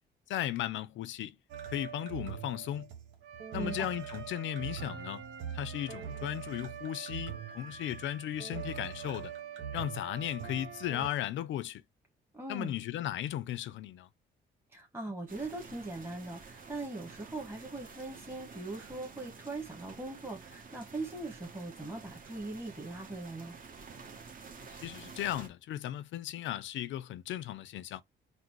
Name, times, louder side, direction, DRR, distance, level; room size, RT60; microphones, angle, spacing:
voice 1, 0.3-1.4 1.7-2.9 3.5-5.2 5.5-9.3 9.7-11.8 12.5-14.1 24.7-28.0, left 12 dB, 75° left, 0.5 m, -36 dB
sound 1, 1.5-11.1, right 8 dB, 80° right, 1.2 m, -42 dB
voice 2, 3.5-3.9 12.3-12.7 14.7-23.5, right 2 dB, 10° right, 1.3 m, -40 dB
sound 2, 15.3-25.5, right 5 dB, 45° right, 1.2 m, -50 dB
4.0 x 2.1 x 4.5 m
cardioid pair, 90°, 20 cm